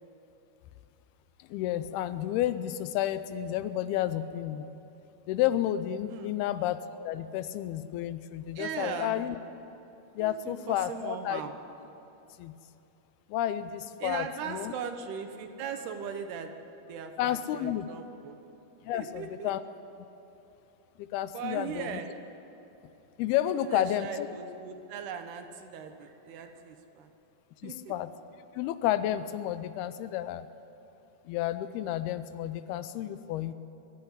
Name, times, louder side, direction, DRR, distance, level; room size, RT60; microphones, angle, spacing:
voice 1, 1.5-4.7 5.3-9.4 10.2-11.4 12.4-12.5 13.3-14.7 17.2-17.9 18.8-19.6 21.0-22.0 23.2-24.3 27.6-28.1 28.5-30.5 31.3-33.5, left 12 dB, 80° left, 13 dB, 2.5 m, -31 dB
voice 2, 6.1-6.4 8.6-9.3 10.2-11.5 14.0-16.5 16.9-18.4 18.9-19.5 21.3-22.1 23.5-27.1 27.6-27.9, right 7 dB, 80° right, 7 dB, 3.2 m, -39 dB
22.5 x 12.0 x 9.8 m, 3.0 s
omnidirectional pair, 4.7 m